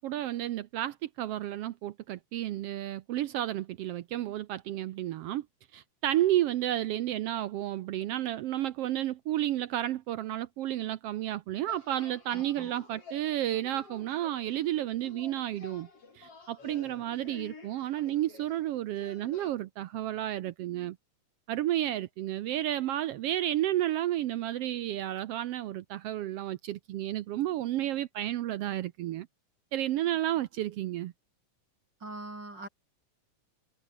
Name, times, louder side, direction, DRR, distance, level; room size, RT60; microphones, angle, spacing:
voice 1, 0.0-5.5 5.7-15.9 16.1-21.0 21.5-29.3 29.7-31.1, right 13 dB, 75° right, 1.4 m, -32 dB
sound 1, 11.7-19.5, left 4 dB, 50° left, 5.6 m, -51 dB
voice 2, 12.3-12.7 32.0-32.7, right 2 dB, 35° right, 5.9 m, -42 dB
omnidirectional pair, 3.5 m